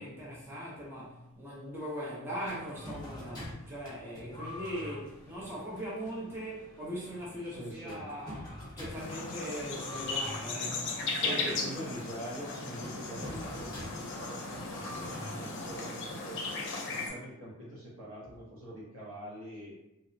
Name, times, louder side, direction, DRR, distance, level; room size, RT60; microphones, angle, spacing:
voice 1, 0.0-8.4 8.8-11.6, equal, 10° right, -7 dB, 0.5 m, -40 dB
sound 1, 2.4-17.1, left 1 dB, 20° left, 0.9 m, -47 dB
voice 2, 7.5-8.1 11.2-16.5 16.8-19.8, equal, 65° right, -5 dB, 0.9 m, -44 dB
sound 2, 8.9-17.1, left 3 dB, 60° left, 0.5 m, -37 dB
2.7 x 2.0 x 2.5 m, 0.91 s
head